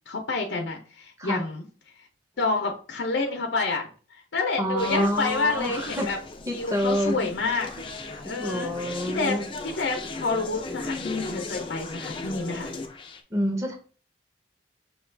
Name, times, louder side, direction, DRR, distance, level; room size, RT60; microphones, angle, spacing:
voice 1, 0.1-1.6 2.4-3.8 4.1-6.2 6.5-7.7 8.2-9.4 9.6-12.7, left 3 dB, 90° left, 3 dB, 0.7 m, -28 dB
voice 2, 4.6-6.1 6.5-7.3 7.8-7.9 8.2-9.5 13.3-13.7, equal, 15° right, 1 dB, 0.8 m, -27 dB
Conversation, 4.8-13.2, left 3 dB, 30° left, 0.5 m, -37 dB
5.8 x 2.4 x 3.2 m, 0.39 s
head